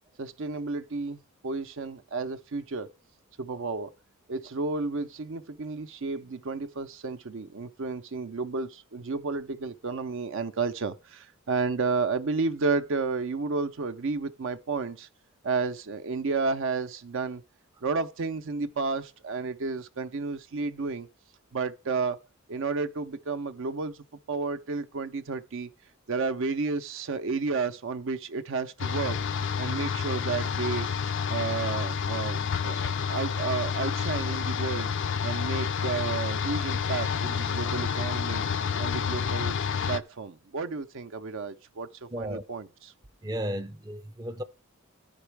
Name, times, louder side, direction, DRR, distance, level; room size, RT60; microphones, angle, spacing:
voice 1, 0.2-2.9 3.4-3.9 4.3-15.1 15.4-17.4 17.8-21.1 21.5-22.2 22.5-25.7 26.1-29.2 29.6-30.9 31.3-34.9 35.2-38.4 38.8-39.6 39.9-42.7, right 4 dB, 60° right, 0.6 m, -31 dB
sound 1, 28.8-40.0, left 6 dB, 60° left, 0.5 m, -29 dB
voice 2, 42.1-42.4 43.2-44.4, equal, 15° right, 0.5 m, -34 dB
14.5 x 5.4 x 3.3 m
head